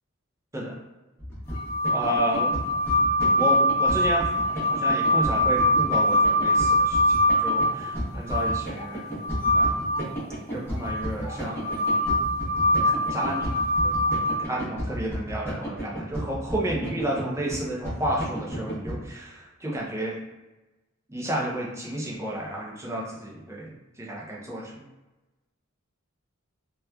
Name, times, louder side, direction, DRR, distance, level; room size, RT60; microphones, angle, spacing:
sound 1, 1.2-19.0, equal, 10° left, 0.9 m, -33 dB
sound 2, 1.5-10.0 10.8-14.3, left 1 dB, 75° left, 0.6 m, -23 dB
voice 1, 1.9-2.5 3.4-4.3 4.7-9.2 9.5-9.8 10.5-11.7 12.8-13.5 13.8-13.9 14.4-20.2 21.1-24.8, right 1 dB, 15° right, -3 dB, 0.5 m, -31 dB
2.8 x 2.2 x 2.3 m, 1.1 s
head